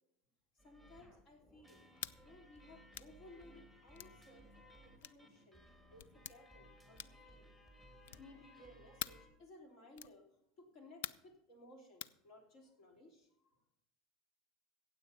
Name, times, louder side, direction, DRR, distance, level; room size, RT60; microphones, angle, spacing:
voice 1, 0.6-1.8 2.1-5.6 5.9-7.5 8.2-10.3 10.6-13.6, left 1 dB, 55° left, 3 dB, 3.3 m, -60 dB
sound 1, 0.6-9.3, equal, 15° left, 3.0 m, -61 dB
sound 2, 2.0-2.2 2.9-3.1 3.9-4.2 5.0-5.2 6.0-6.4 6.9-7.3 8.0-8.3 9.0-9.3 9.9-10.2 11.0-11.3 12.0-12.2, left 12 dB, 80° left, 0.4 m, -46 dB
16.0 x 7.9 x 5.3 m, 0.77 s
supercardioid pair, 110°, 0 cm